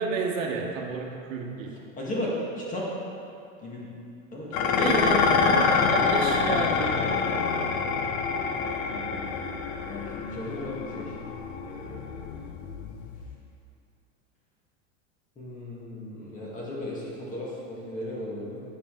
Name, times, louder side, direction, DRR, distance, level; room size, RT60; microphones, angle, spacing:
voice 1, 0.0-1.8 4.7-7.5, right 4 dB, 80° right, 1 dB, 1.3 m, -31 dB
voice 2, 2.0-2.9 3.6-3.9 4.3-5.6 8.9-9.2 9.9-11.1 11.6-12.3 15.4-18.6, left 1 dB, 20° left, -4 dB, 1.7 m, -36 dB
Dishes pots and pans, 4.5-13.3, left 5 dB, 40° left, 0.6 m, -26 dB
9.3 x 6.8 x 3.8 m, 2.6 s
supercardioid pair, 140°, 39 cm